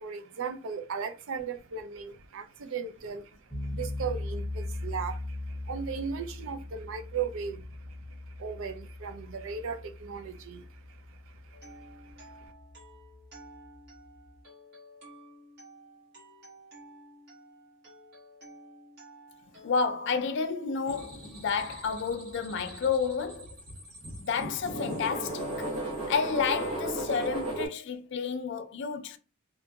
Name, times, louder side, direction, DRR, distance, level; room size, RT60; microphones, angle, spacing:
voice 1, 0.0-12.5, right 6 dB, 65° right, 0.4 m, -38 dB
sound 1, 3.5-14.4, left 2 dB, ahead, 0.7 m, -40 dB
sound 2, 11.5-21.4, right 1 dB, 45° right, 1.1 m, -53 dB
voice 2, 19.6-23.5 24.2-25.7 26.1-29.2, left 5 dB, 55° left, 0.4 m, -30 dB
sound 3, 20.9-27.7, right 1 dB, 85° right, 1.1 m, -36 dB
2.8 x 2.5 x 2.3 m
head